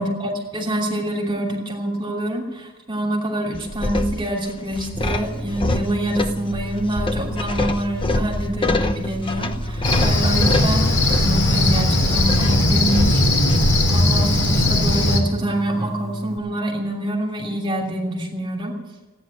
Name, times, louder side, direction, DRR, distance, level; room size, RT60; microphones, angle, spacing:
voice 1, 0.0-13.5 13.8-18.7, right 1 dB, 20° right, -1 dB, 2.9 m, -26 dB
sound 1, 3.5-13.6, left 2 dB, 25° left, 0.8 m, -26 dB
sound 2, 4.9-16.4, right 1 dB, ahead, 1.6 m, -33 dB
Cricket, 9.8-15.2, left 1 dB, 50° left, 3.4 m, -18 dB
16.5 x 9.9 x 8.8 m, 1.2 s
head